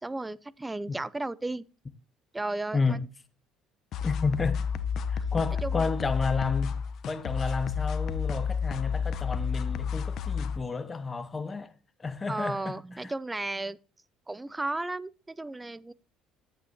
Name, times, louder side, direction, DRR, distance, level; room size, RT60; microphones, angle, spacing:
voice 1, 0.0-1.6 2.3-3.0 5.6-5.9 12.3-13.8 14.3-15.9, right 2 dB, 15° right, 0.5 m, -34 dB
voice 2, 2.7-3.1 4.0-4.7 5.1-6.8 7.0-11.7 12.0-13.1, left 4 dB, 25° left, 1.0 m, -31 dB
sound 1, 3.9-10.6, left 6 dB, 60° left, 1.0 m, -31 dB
10.0 x 8.9 x 2.8 m
supercardioid pair, 90°, 0 cm